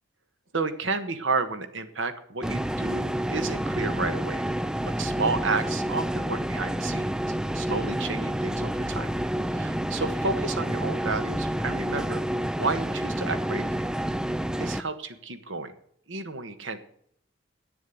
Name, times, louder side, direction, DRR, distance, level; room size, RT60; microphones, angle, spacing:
voice 1, 0.5-4.4 5.0-7.2 7.5-9.1 9.5-12.2 12.6-13.8 14.6-15.7 16.1-16.8, right 3 dB, 70° right, 10 dB, 1.4 m, -31 dB
sound 1, 2.4-14.8, right 1 dB, 5° right, 0.4 m, -29 dB
9.5 x 7.4 x 9.2 m, 0.68 s
head